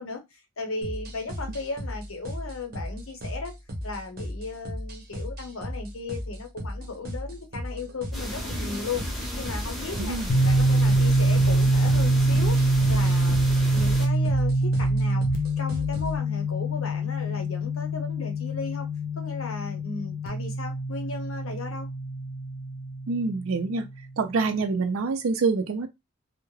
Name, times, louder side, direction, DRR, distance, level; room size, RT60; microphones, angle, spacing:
voice 1, 0.0-3.5 3.8-9.0 9.4-10.2 10.4-15.2 15.6-18.9 19.2-21.9, left 3 dB, 80° left, 0.8 m, -36 dB
sound 1, 0.8-16.2, equal, 45° right, 0.7 m, -36 dB
sound 2, 8.1-14.1, equal, ahead, 0.6 m, -34 dB
voice 2, 10.0-10.3 23.1-23.8 24.2-25.9, right 4 dB, 75° right, 0.4 m, -26 dB
sound 3, 10.3-23.9, right 1 dB, 40° left, 0.5 m, -24 dB
2.2 x 2.0 x 3.1 m
head